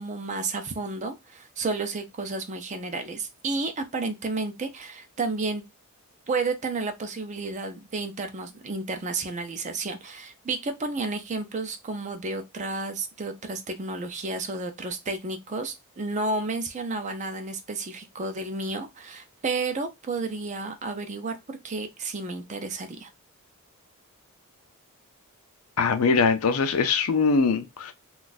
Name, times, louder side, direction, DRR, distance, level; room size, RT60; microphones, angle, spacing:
voice 1, 0.0-5.6 6.3-23.1, right 3 dB, 35° right, 0.5 m, -31 dB
voice 2, 25.8-27.9, left 4 dB, 70° left, 0.5 m, -22 dB
2.5 x 2.4 x 3.9 m
head